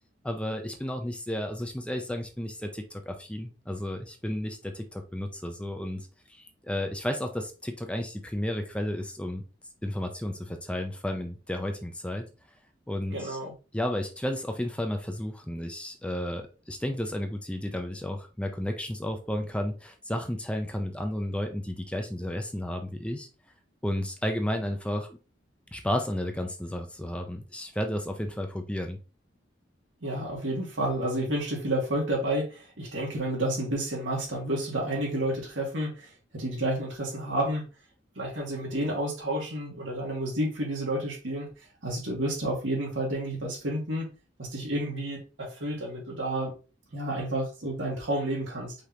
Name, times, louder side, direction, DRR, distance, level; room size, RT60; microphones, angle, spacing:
voice 1, 0.2-9.4 9.8-12.3 12.9-13.4 13.7-23.3 23.8-25.2 25.7-29.0, left 1 dB, 5° left, 0.6 m, -32 dB
voice 2, 13.1-13.5 30.0-37.7 38.2-41.5 41.8-44.1 44.4-46.5 46.9-48.7, right 1 dB, 85° right, 1.9 m, -30 dB
5.1 x 3.5 x 3.0 m
head